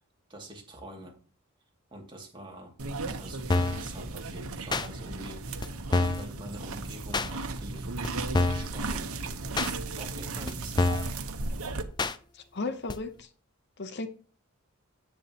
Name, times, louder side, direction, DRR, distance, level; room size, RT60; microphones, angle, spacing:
voice 1, 0.3-1.2 1.9-2.8 3.1-7.9 8.5-9.2 9.7-11.1, right 1 dB, 20° right, 2.4 m, -45 dB
sound 1, 2.8-11.8, right 3 dB, 85° right, 1.1 m, -36 dB
sound 2, 3.5-3.8 4.7-4.9 5.6-5.7 5.9-6.3 7.1-7.3 8.0-8.1 8.3-8.7 9.6-9.7 10.5-10.6 10.8-11.1 12.0-12.2 12.9-13.0, left 2 dB, 20° left, 0.5 m, -26 dB
voice 2, 12.3-13.3 13.8-14.1, left 3 dB, 50° left, 0.9 m, -35 dB
10.0 x 9.0 x 3.0 m
head